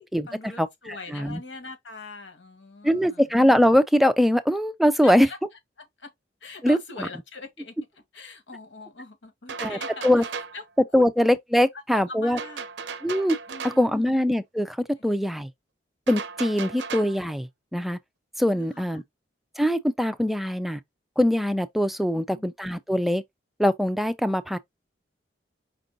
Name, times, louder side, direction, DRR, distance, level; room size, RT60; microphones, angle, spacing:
voice 1, 0.0-3.3 5.0-5.4 5.8-6.1 6.4-10.3 10.5-10.6 10.9-11.1 11.9-12.7 13.5-14.2 15.0-15.1 18.5-19.0 22.1-22.5, left 3 dB, 90° left, 1.4 m, -42 dB
voice 2, 2.8-5.3 6.6-7.1 9.6-9.8 10.0-10.2 10.9-12.4 13.0-13.4 13.6-14.8 15.0-15.5 16.1-18.0 18.4-19.0 19.6-20.8 21.2-23.2 23.6-24.6, equal, ahead, 0.3 m, -22 dB
sound 1, 9.5-10.6 12.4-13.9 16.1-17.2, right 5 dB, 75° right, 0.6 m, -36 dB
5.2 x 2.5 x 3.8 m
head